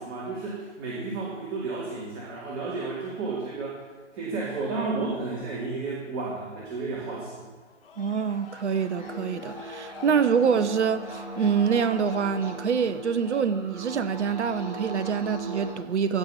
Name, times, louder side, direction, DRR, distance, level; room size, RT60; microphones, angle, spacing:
voice 1, 0.0-3.8 4.1-7.4, right 3 dB, 30° right, 2.6 m, -32 dB
sound 1, 7.6-12.6, left 4 dB, 50° left, 1.9 m, -47 dB
voice 2, 8.0-16.2, right 6 dB, 70° right, 0.7 m, -26 dB
sound 2, 9.0-15.7, right 2 dB, 5° right, 2.8 m, -38 dB
16.0 x 5.5 x 5.6 m
figure-of-eight pair, 130°, 36 cm